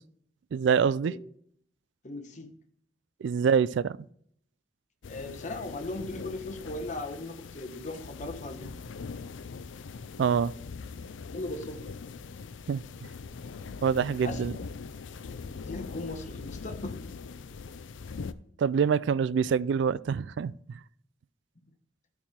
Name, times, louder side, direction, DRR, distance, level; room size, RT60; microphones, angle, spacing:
voice 1, 0.5-1.1 3.2-4.0 10.2-10.5 12.7-13.1 13.8-14.5 18.6-20.8, right 6 dB, 65° right, 0.3 m, -26 dB
voice 2, 2.0-2.5 5.1-8.8 11.3-11.9 14.2-14.4 15.5-17.0, left 2 dB, 40° left, 1.0 m, -38 dB
sound 1, 5.0-18.3, left 5 dB, 75° left, 0.5 m, -42 dB
12.5 x 4.8 x 4.3 m
head